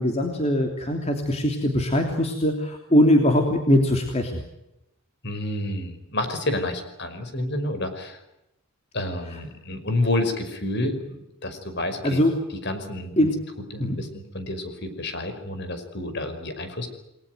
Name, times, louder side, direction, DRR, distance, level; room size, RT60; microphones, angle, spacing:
voice 1, 0.0-4.4 9.3-9.4 12.0-12.3 13.2-13.4 13.8-14.0, left 1 dB, 30° left, 3 dB, 3.1 m, -21 dB
voice 2, 5.2-8.2 8.9-12.2 12.7-13.2 13.7-16.9, left 1 dB, 50° left, 9 dB, 5.4 m, -29 dB
30.0 x 21.0 x 8.0 m, 0.89 s
head